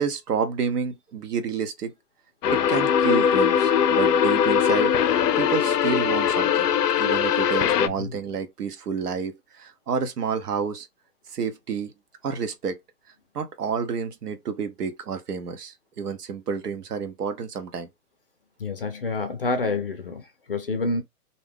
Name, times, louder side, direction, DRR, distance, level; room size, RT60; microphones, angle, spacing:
voice 1, 0.0-1.9 2.5-4.9 5.4-6.7 7.0-10.9 11.3-11.9 12.2-12.8 13.3-17.9, right 6 dB, 75° right, 0.9 m, -29 dB
sound 1, 2.4-7.9, left 8 dB, 90° left, 0.6 m, -21 dB
voice 2, 18.6-20.2 20.5-21.0, left 3 dB, 40° left, 0.5 m, -27 dB
2.7 x 2.1 x 3.4 m
hypercardioid pair, 165°, 46 cm